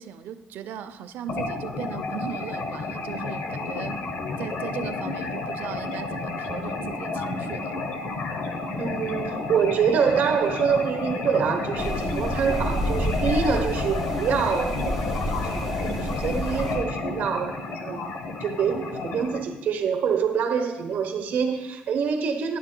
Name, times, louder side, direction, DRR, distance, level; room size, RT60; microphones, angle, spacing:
voice 1, 0.0-4.0 4.4-7.8, right 9 dB, 75° right, 11 dB, 0.5 m, -38 dB
sound 1, 1.3-19.4, left 3 dB, 65° left, 0.8 m, -31 dB
voice 2, 8.8-18.1 18.4-22.6, right 6 dB, 60° right, 6 dB, 0.9 m, -26 dB
sound 2, 11.8-16.8, equal, ahead, 2.3 m, -29 dB
11.5 x 10.0 x 2.2 m, 1.1 s
cardioid pair, 165°, 3 cm